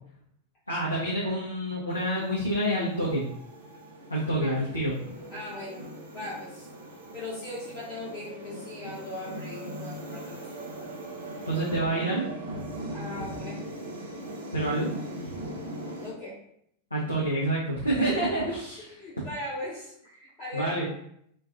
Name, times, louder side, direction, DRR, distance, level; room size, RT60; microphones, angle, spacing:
voice 1, 0.7-3.2 4.1-4.9 11.4-12.2 14.5-14.9 15.2-15.3 16.9-19.0 20.5-20.9, right 1 dB, 80° left, -6 dB, 0.5 m, -28 dB
sound 1, 1.9-16.1, right 1 dB, 60° right, 0.6 m, -40 dB
voice 2, 5.3-5.8 6.1-6.7 7.1-10.7 12.9-13.6 15.8-16.4 17.9-18.3 18.8-20.9, left 1 dB, 35° left, -9 dB, 0.8 m, -39 dB
2.4 x 2.2 x 2.3 m, 0.71 s
figure-of-eight pair, 90°, 0 cm